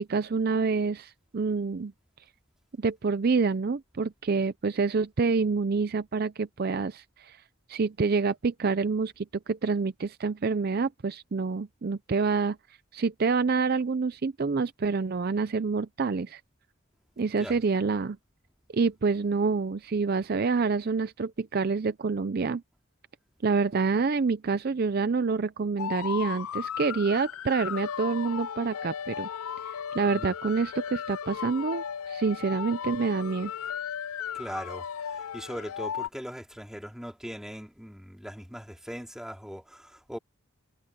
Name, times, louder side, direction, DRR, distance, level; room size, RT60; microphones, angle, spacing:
voice 1, 0.0-1.9 2.8-7.4 7.7-12.6 12.9-16.4 17.2-18.2 18.7-22.6 23.4-29.3 29.6-33.5, right 4 dB, 45° right, 0.5 m, -27 dB
sound 1, 25.8-36.1, left 8 dB, 85° left, 0.4 m, -36 dB
voice 2, 34.3-34.9 35.3-40.2, equal, ahead, 3.6 m, -40 dB
head